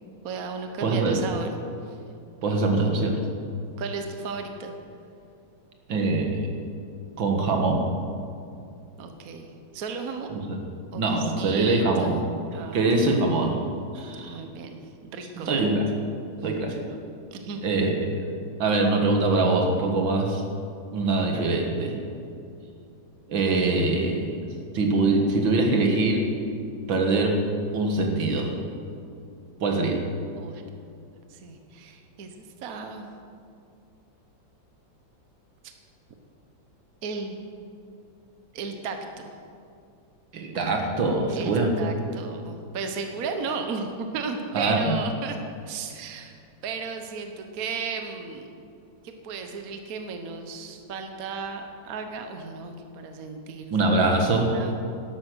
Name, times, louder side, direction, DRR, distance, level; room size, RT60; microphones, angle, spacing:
voice 1, 0.2-1.6 1.9-2.0 3.8-4.7 9.0-10.3 10.9-12.2 12.5-13.0 14.2-15.5 17.3-17.8 30.4-30.6 31.3-32.3 32.6-33.1 37.0-37.4 38.5-39.3 41.3-45.4 45.7-46.3 46.6-48.5 49.0-53.7 54.3-54.7, right 5 dB, 55° right, 5 dB, 1.4 m, -35 dB
voice 2, 0.8-1.2 2.4-3.2 5.9-6.5 7.2-7.9 10.3-10.6 11.0-12.1 12.7-13.6 13.9-14.3 15.5-15.9 16.4-16.8 17.6-18.2 18.6-20.4 20.9-22.0 23.3-24.4 24.7-26.2 26.9-27.4 27.7-28.5 29.6-30.0 40.3-41.7 44.5-45.0 53.7-54.5, right 3 dB, 80° right, 2 dB, 2.3 m, -23 dB
12.5 x 11.5 x 6.3 m, 2.5 s
omnidirectional pair, 2.1 m